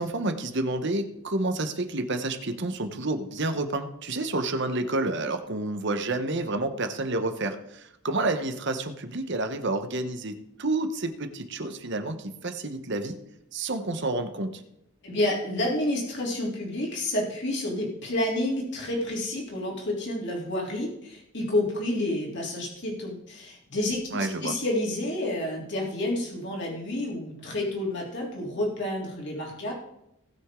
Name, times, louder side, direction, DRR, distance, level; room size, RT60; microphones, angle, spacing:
voice 1, 0.0-13.2 13.5-14.6 24.1-24.5, right 2 dB, 50° right, 7 dB, 1.1 m, -29 dB
voice 2, 15.0-29.7, left 1 dB, 50° left, -2 dB, 3.3 m, -29 dB
18.5 x 6.4 x 3.8 m, 0.79 s
head